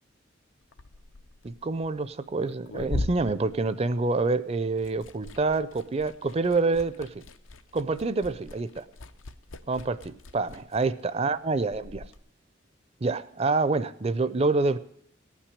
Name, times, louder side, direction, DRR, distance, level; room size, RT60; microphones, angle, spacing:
Liquid, 0.6-4.3 4.6-12.2, left 2 dB, 85° left, 0.7 m, -40 dB
voice 1, 1.4-7.2 7.7-8.8 9.7-12.0 13.0-14.8, right 3 dB, 30° right, 14 dB, 0.4 m, -27 dB
17.5 x 6.0 x 9.7 m, 0.71 s
head